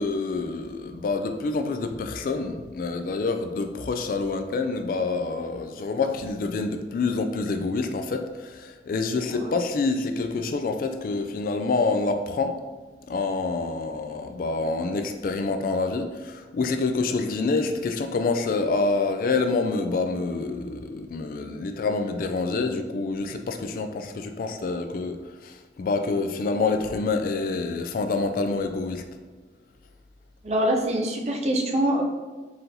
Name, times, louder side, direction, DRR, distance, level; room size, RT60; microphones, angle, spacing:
voice 1, 0.0-12.6 13.1-29.0, left 3 dB, 50° left, 7 dB, 0.3 m, -27 dB
voice 2, 30.4-32.0, right 1 dB, 40° right, 0 dB, 0.6 m, -24 dB
4.2 x 3.8 x 2.7 m, 1.3 s
head